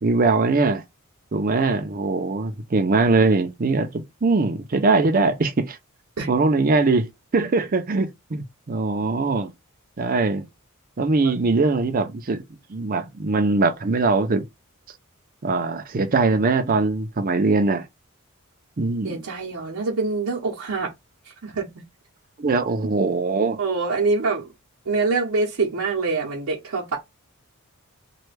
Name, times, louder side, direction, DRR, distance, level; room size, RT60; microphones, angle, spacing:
voice 1, 0.0-0.8 1.3-5.8 6.3-9.5 10.0-10.5 11.0-12.4 12.7-14.4 15.4-17.9 18.8-19.2 22.4-23.6, right 3 dB, 40° right, 0.5 m, -21 dB
voice 2, 19.0-20.9 21.2-21.7 23.6-24.5 24.9-27.0, right 3 dB, 80° right, 0.8 m, -25 dB
3.1 x 2.2 x 3.2 m
head